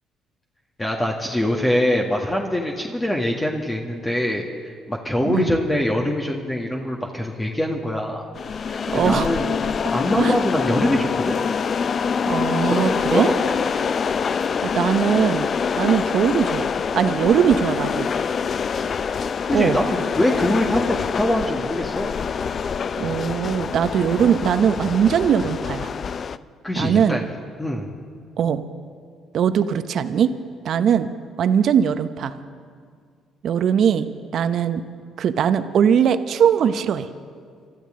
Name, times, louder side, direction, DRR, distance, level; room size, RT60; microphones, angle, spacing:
voice 1, 0.8-4.5 4.9-8.2 8.7-9.5 9.9-11.4 12.6-13.5 19.5-22.2 26.6-27.2 27.6-27.9, left 1 dB, 20° left, 0 dB, 1.6 m, -23 dB
voice 2, 5.2-5.6 8.9-9.3 10.2-10.4 12.3-13.3 14.7-15.5 15.8-18.1 19.5-19.8 23.0-25.9 26.7-27.2 28.4-28.6 29.3-30.3 30.6-31.1 31.4-32.3 33.4-34.1 34.3-34.8 35.2-37.1, right 8 dB, 65° right, 11 dB, 0.8 m, -20 dB
sound 1, 8.3-26.4, left 6 dB, 50° left, 0.4 m, -25 dB
25.5 x 13.5 x 3.8 m, 2.1 s
hypercardioid pair, 55°, 0 cm